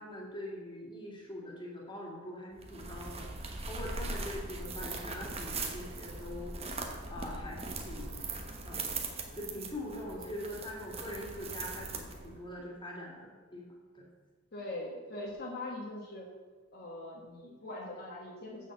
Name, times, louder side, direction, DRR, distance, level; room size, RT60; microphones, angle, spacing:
voice 1, 0.0-8.2 8.6-9.0 9.4-13.6 13.9-14.1, left 1 dB, 25° left, -3 dB, 2.3 m, -43 dB
sound 1, 2.6-12.4, right 3 dB, 30° right, 1.1 m, -40 dB
voice 2, 14.5-16.3 16.7-18.7, left 1 dB, 50° left, -3 dB, 1.4 m, -42 dB
7.5 x 6.5 x 7.4 m, 1.4 s
head